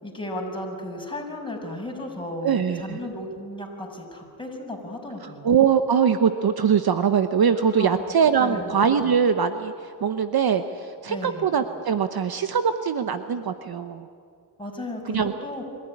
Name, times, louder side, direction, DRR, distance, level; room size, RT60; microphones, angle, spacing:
voice 1, 0.0-5.5 7.8-7.9 8.4-8.7 11.1-11.5 14.6-15.6, left 1 dB, 10° left, 0 dB, 6.2 m, -34 dB
voice 2, 2.4-3.0 5.4-9.7 10.0-14.1 15.1-15.3, right 7 dB, 50° right, 9 dB, 1.1 m, -22 dB
24.5 x 15.0 x 9.9 m, 2.3 s
cardioid pair, 70°, 47 cm